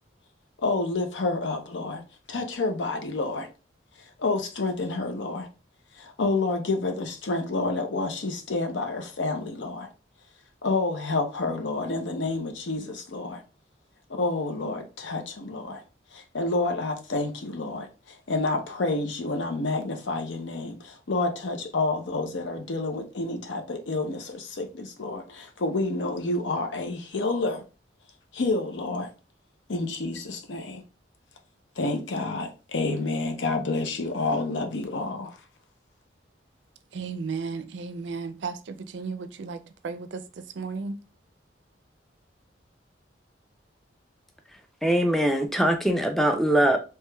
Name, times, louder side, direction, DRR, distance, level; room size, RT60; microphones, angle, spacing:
voice 1, 0.6-2.0 2.3-3.5 4.0-5.5 5.9-9.9 10.6-13.4 14.1-15.8 16.1-27.6 28.3-29.1 29.7-30.8 31.8-35.4, left 3 dB, 75° left, 0.6 m, -29 dB
voice 2, 36.9-40.2 40.6-41.0, right 4 dB, 70° right, 0.4 m, -34 dB
voice 3, 44.8-46.8, right 1 dB, ahead, 0.4 m, -22 dB
3.3 x 2.9 x 2.2 m
head